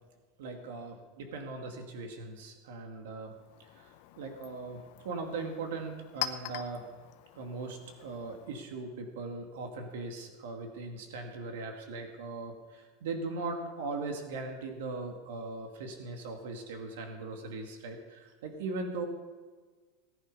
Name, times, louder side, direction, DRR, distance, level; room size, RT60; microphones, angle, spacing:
voice 1, 0.4-3.4 3.7-3.9 4.2-6.9 7.4-19.1, right 3 dB, 85° right, 3 dB, 2.2 m, -39 dB
Chink clink, 3.3-8.8, left 12 dB, 55° left, 1.0 m, -44 dB
18.5 x 10.5 x 5.5 m, 1.4 s
supercardioid pair, 175°, 0 cm